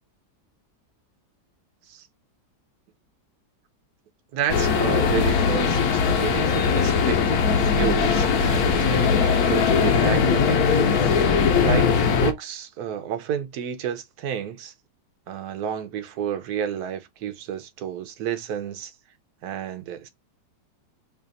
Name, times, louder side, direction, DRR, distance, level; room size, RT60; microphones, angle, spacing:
voice 1, 4.3-10.9 11.6-11.9 12.2-14.7 15.3-18.9 19.4-20.1, right 9 dB, 65° right, 1.1 m, -31 dB
sound 1, 4.5-12.3, left 6 dB, 65° left, 1.1 m, -20 dB
3.3 x 2.4 x 3.9 m
omnidirectional pair, 1.9 m